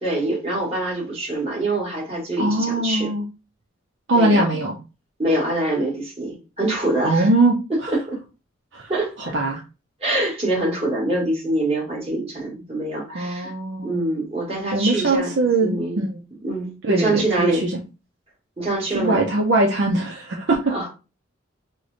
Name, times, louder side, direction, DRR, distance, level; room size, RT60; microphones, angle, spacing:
voice 1, 0.0-3.1 4.1-4.5 5.2-7.3 7.7-8.2 8.9-9.3 10.0-13.5 13.8-15.3 15.6-16.0 16.4-17.7 18.6-19.2 20.7-20.9, right 1 dB, 30° right, -4 dB, 1.4 m, -25 dB
voice 2, 2.4-3.2 4.1-4.8 7.0-7.6 7.8-7.9 8.7-8.9 9.2-9.6 13.1-14.0 14.7-16.1 16.8-17.7 18.9-20.7, right 2 dB, 60° right, 0 dB, 0.5 m, -21 dB
3.1 x 2.1 x 3.8 m, 0.31 s
head